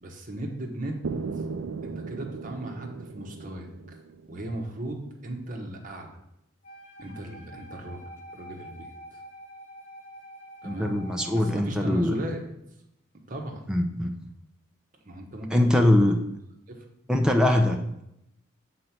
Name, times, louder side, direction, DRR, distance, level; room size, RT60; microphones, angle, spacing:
voice 1, 0.0-1.0 1.8-3.7 4.3-6.2 7.0-8.0 8.3-9.2 10.6-10.9 11.3-12.4 13.3-13.6 15.0-15.9 16.7-16.8, right 1 dB, 40° right, 2 dB, 1.1 m, -36 dB
sound 1, 1.0-4.9, right 4 dB, 70° right, 0.4 m, -37 dB
Wind instrument woodwind instrument, 6.6-11.7, right 1 dB, 40° left, 2.3 m, -46 dB
voice 2, 10.6-12.1 13.7-14.1 15.5-16.2 17.1-18.0, left 1 dB, 5° right, 3 dB, 0.6 m, -22 dB
6.6 x 4.4 x 5.8 m, 0.80 s
head